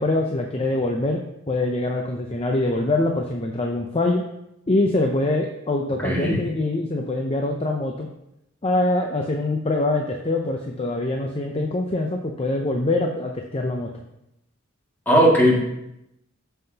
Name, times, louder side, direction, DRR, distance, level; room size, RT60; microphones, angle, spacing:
voice 1, 0.0-4.2 4.7-8.1 8.6-14.0, left 2 dB, 25° left, 2 dB, 0.6 m, -24 dB
voice 2, 6.0-6.4 15.1-15.6, equal, 10° left, -5 dB, 2.1 m, -17 dB
13.0 x 5.7 x 2.9 m, 0.85 s
head